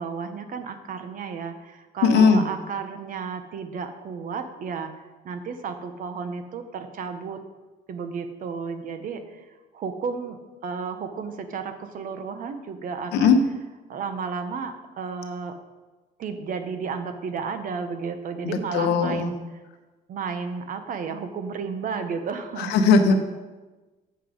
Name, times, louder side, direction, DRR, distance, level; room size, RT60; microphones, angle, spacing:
voice 1, 0.0-7.4 7.9-13.4 13.9-15.6 16.2-19.4 20.1-22.8, right 5 dB, 55° right, 9 dB, 0.9 m, -33 dB
voice 2, 2.0-2.5 13.1-13.4 18.4-19.3 22.6-23.1, left 5 dB, 85° left, 7 dB, 1.0 m, -19 dB
8.0 x 6.6 x 5.0 m, 1.2 s
cardioid pair, 110°, 17 cm